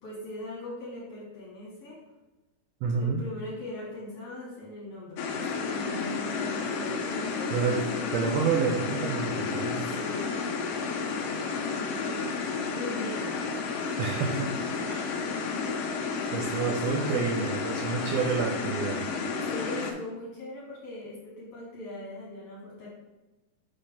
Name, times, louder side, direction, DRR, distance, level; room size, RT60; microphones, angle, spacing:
voice 1, 0.0-2.0 2.9-8.0 9.9-10.4 11.7-13.4 19.4-22.9, left 1 dB, 60° left, -6 dB, 2.3 m, -40 dB
voice 2, 2.8-3.2 7.5-7.8 8.1-9.9 14.0-14.5 14.9-15.1 16.3-19.1, right 6 dB, 85° right, 0 dB, 1.5 m, -29 dB
sound 1, 5.2-19.9, left 5 dB, 85° left, 1.4 m, -31 dB
6.3 x 3.3 x 5.8 m, 1.1 s
omnidirectional pair, 3.7 m